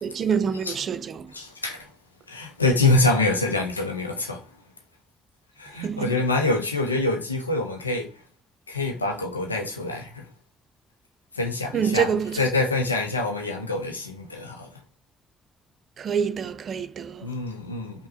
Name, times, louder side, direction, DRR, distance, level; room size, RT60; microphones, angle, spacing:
voice 1, 0.0-1.3 5.8-6.2 11.7-12.4 16.0-17.3, right 7 dB, 50° right, 0.5 m, -26 dB
voice 2, 1.3-1.9 2.3-4.5 5.6-8.1 8.7-10.3 11.3-14.7 17.2-18.1, left 2 dB, 85° left, 0.5 m, -25 dB
5.3 x 2.1 x 2.7 m
figure-of-eight pair, 40°, 0 cm